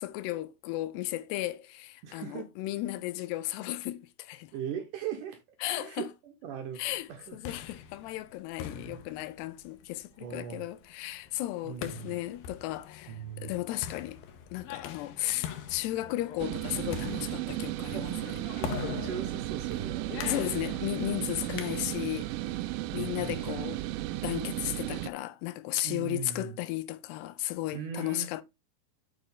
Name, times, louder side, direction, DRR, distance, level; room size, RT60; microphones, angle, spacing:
voice 1, 0.0-4.5 5.6-6.1 6.8-14.2 14.5-18.1 20.3-22.3 22.9-23.8 24.2-28.4, left 16 dB, 90° left, 2.8 m, -35 dB
voice 2, 2.0-2.5 4.5-7.4 8.7-9.0 10.2-10.7 11.6-12.2 13.1-13.5 17.9-18.1 18.6-20.1 22.8-23.5 25.8-26.6 27.7-28.3, right 8 dB, 70° right, 2.0 m, -40 dB
sound 1, 7.1-22.3, left 9 dB, 70° left, 2.5 m, -43 dB
sound 2, 16.4-25.1, right 16 dB, 90° right, 2.0 m, -34 dB
6.6 x 6.6 x 3.7 m
omnidirectional pair, 4.7 m